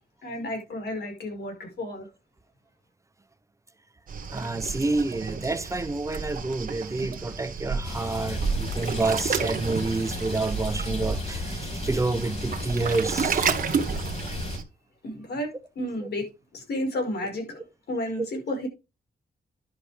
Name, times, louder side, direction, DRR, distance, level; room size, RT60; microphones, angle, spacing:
voice 1, 0.2-2.1 15.0-18.7, left 1 dB, 85° left, 5.1 m, -32 dB
Waves surf, 4.1-14.6, right 6 dB, 55° right, 1.3 m, -31 dB
voice 2, 4.3-13.6 16.0-16.1, right 3 dB, 20° right, 0.7 m, -28 dB
sound 1, 7.8-14.6, left 3 dB, 40° left, 2.2 m, -35 dB
11.0 x 5.7 x 5.0 m
wide cardioid pair, 160°, 16 cm